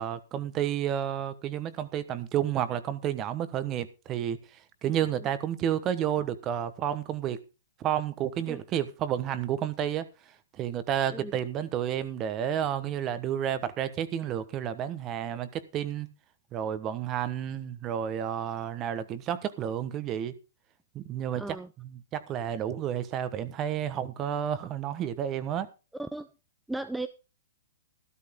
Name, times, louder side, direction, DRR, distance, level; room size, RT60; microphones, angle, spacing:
voice 1, 0.0-4.4 4.8-7.4 7.8-10.1 10.6-16.1 16.5-20.3 20.9-21.6 22.1-25.7, right 10 dB, 25° right, 1.2 m, -31 dB
voice 2, 21.3-21.7 26.0-26.3 26.7-27.1, right 2 dB, 5° right, 0.6 m, -36 dB
13.0 x 12.5 x 3.7 m
hypercardioid pair, 150°, 0 cm